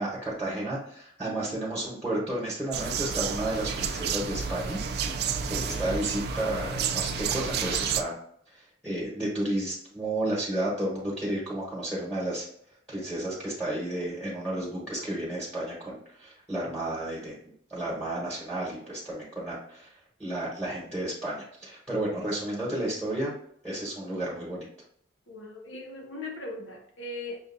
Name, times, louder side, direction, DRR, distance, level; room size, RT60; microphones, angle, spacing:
voice 1, 0.0-4.8 5.1-8.1 8.5-12.5 12.9-19.9 20.2-23.4 23.6-24.7, right 1 dB, 5° right, 1.1 m, -32 dB
voice 2, 1.2-1.6 22.1-22.5 25.3-27.4, left 2 dB, 90° left, 1.0 m, -40 dB
sound 1, 2.7-8.0, right 6 dB, 55° right, 0.3 m, -30 dB
6.1 x 2.6 x 2.6 m
head